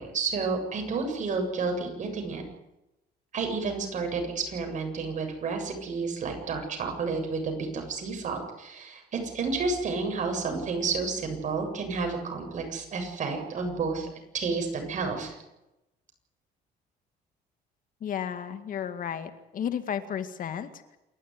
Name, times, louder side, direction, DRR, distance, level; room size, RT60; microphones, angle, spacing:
voice 1, 0.0-2.4 3.3-14.1 14.3-15.4, right 4 dB, 45° right, 4 dB, 7.6 m, -31 dB
voice 2, 18.0-21.0, left 8 dB, 55° left, 9 dB, 2.1 m, -33 dB
28.0 x 13.0 x 9.6 m, 0.94 s
cardioid pair, 120°, 17 cm